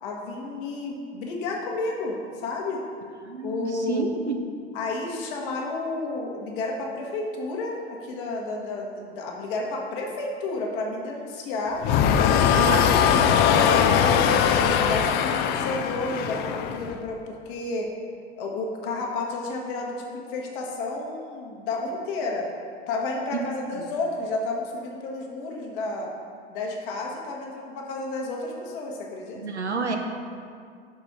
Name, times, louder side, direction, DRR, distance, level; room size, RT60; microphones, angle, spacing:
voice 1, 0.0-2.8 3.4-4.2 4.7-11.9 12.4-12.8 13.0-17.9 18.4-22.5 22.9-26.1 26.5-29.4, left 2 dB, 55° left, 0 dB, 1.3 m, -31 dB
voice 2, 3.2-4.4 12.5-12.8 29.4-30.0, right 4 dB, 90° right, 3 dB, 0.6 m, -29 dB
sound 1, 11.8-17.0, left 8 dB, 30° left, 0.4 m, -21 dB
6.0 x 4.4 x 5.8 m, 2.3 s
figure-of-eight pair, 75°, 33 cm